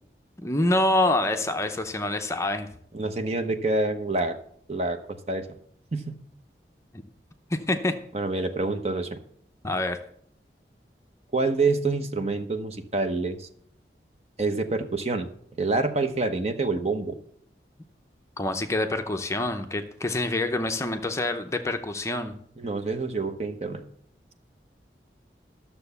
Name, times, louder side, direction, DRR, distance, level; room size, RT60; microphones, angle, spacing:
voice 1, 0.4-2.7 7.5-8.0 9.6-10.0 18.4-22.3, left 2 dB, 15° left, 6 dB, 0.6 m, -26 dB
voice 2, 2.9-4.4 4.7-5.5 5.9-6.2 8.1-9.2 11.3-13.5 14.4-15.3 15.6-17.2 22.6-23.8, right 3 dB, 35° right, 8 dB, 0.9 m, -27 dB
12.0 x 7.0 x 6.8 m, 0.66 s
head